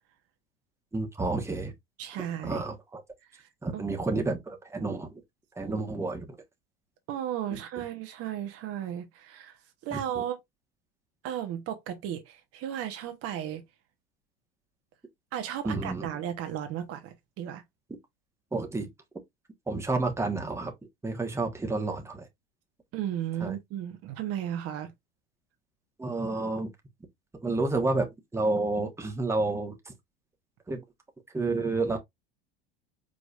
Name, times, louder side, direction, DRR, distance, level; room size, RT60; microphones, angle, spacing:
voice 1, 0.9-1.7 2.4-3.0 3.6-5.1 5.6-6.4 15.6-16.1 18.5-18.9 19.7-20.7 21.0-22.3 23.4-23.5 26.0-26.7 27.4-29.9 30.7-30.8 31.3-32.0, right 3 dB, 10° right, 1.3 m, -30 dB
voice 2, 2.0-2.6 3.3-3.8 7.1-9.6 9.8-10.4 11.2-13.6 15.3-17.6 22.9-24.9, right 10 dB, 50° right, 1.1 m, -35 dB
5.0 x 3.8 x 2.5 m
hypercardioid pair, 85°, 31 cm